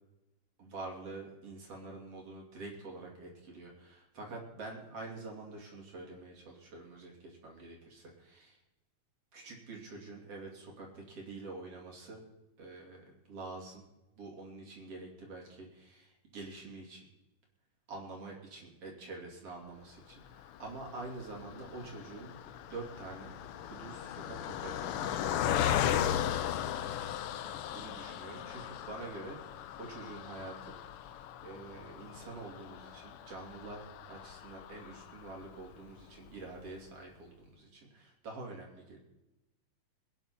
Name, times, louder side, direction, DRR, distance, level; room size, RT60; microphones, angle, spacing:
voice 1, 0.6-8.6 9.3-12.2 12.6-13.0 13.3-13.8 14.2-17.1 17.9-22.4 22.7-23.3 23.6-26.8 27.7-29.4 29.8-30.8 31.4-33.8 34.1-39.0, right 3 dB, 50° right, -1 dB, 3.7 m, -46 dB
Car passing by, 20.3-35.7 36.3-36.4 36.6-36.8, left 10 dB, 90° left, 1.2 m, -37 dB
23.0 x 10.0 x 4.4 m, 1.0 s
omnidirectional pair, 3.5 m